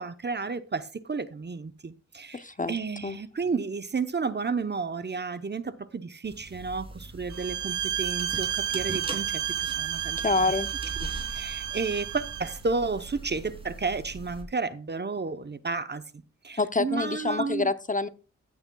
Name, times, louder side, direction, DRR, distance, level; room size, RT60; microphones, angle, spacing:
voice 1, 0.0-10.2 11.0-16.0 16.4-17.7, right 4 dB, 35° right, 0.9 m, -32 dB
voice 2, 2.3-2.8 3.0-3.2 10.2-10.7 16.6-18.1, left 3 dB, 25° left, 0.7 m, -27 dB
sound 1, 6.2-14.4, right 2 dB, 20° right, 3.0 m, -41 dB
sound 2, 7.3-12.6, right 10 dB, 75° right, 0.6 m, -31 dB
15.0 x 8.8 x 2.3 m
cardioid pair, 60°, 29 cm